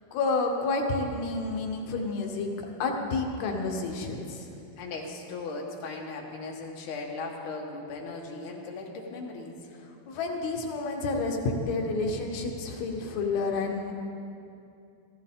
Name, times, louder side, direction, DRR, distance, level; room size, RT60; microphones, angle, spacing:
voice 1, 0.1-2.5 2.8-4.5 9.8-13.9, left 3 dB, 85° left, 1 dB, 3.0 m, -30 dB
voice 2, 4.8-9.6, left 3 dB, 65° left, 0 dB, 2.7 m, -38 dB
16.0 x 15.0 x 3.7 m, 2.6 s
omnidirectional pair, 4.3 m